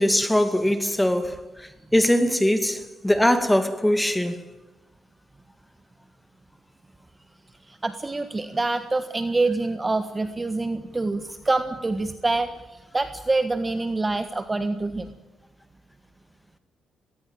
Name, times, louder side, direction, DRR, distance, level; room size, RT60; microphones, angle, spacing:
voice 1, 0.0-1.4 1.9-4.4, left 1 dB, 5° left, 2.4 m, -21 dB
voice 2, 7.7-15.1, right 2 dB, 20° right, 1.5 m, -26 dB
19.0 x 19.0 x 8.9 m
cardioid pair, 90°, 0 cm